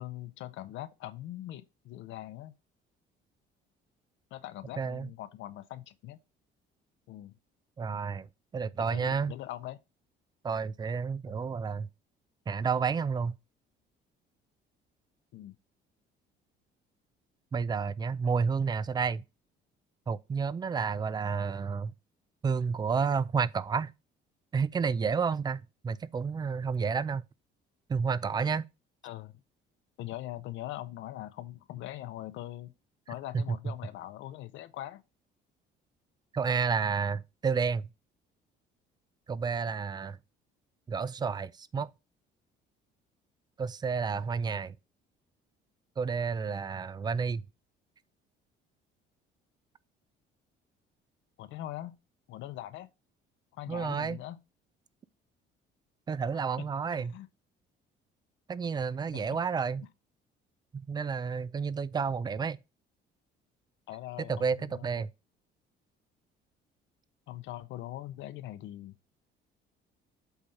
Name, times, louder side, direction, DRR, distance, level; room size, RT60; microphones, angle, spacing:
voice 1, 0.0-2.5 4.3-6.2 7.1-7.3 8.9-9.8 11.3-11.4 15.3-15.5 29.0-29.3 30.0-32.7 33.1-35.0 51.4-52.0 52.3-52.9 53.5-54.4 56.3-56.7 56.9-57.3 59.1-59.2 63.9-65.1 67.3-68.9, left 14 dB, 70° left, 0.6 m, -42 dB
voice 2, 4.8-5.1 7.8-8.3 8.5-9.3 10.4-11.9 12.5-13.4 17.5-19.2 20.1-21.9 22.4-23.9 24.5-27.2 27.9-28.6 33.3-33.7 36.3-37.9 39.3-40.2 40.9-41.9 43.6-44.8 46.0-47.4 53.7-54.2 56.1-57.1 58.5-59.9 60.7-62.6 64.3-65.1, right 5 dB, 20° right, 0.4 m, -30 dB
8.0 x 3.6 x 4.1 m
cardioid pair, 110°, 20 cm